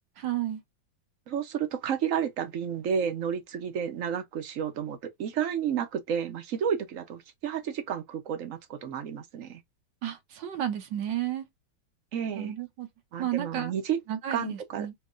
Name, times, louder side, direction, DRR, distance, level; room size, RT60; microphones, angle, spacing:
voice 1, 0.2-0.6 10.0-11.4 12.3-12.9 13.2-13.7 14.1-14.9, right 11 dB, 75° right, 1.4 m, -32 dB
voice 2, 1.3-9.6 12.1-12.5 13.1-14.0 14.3-14.9, right 8 dB, 55° right, 1.0 m, -31 dB
4.5 x 2.9 x 2.5 m
omnidirectional pair, 2.0 m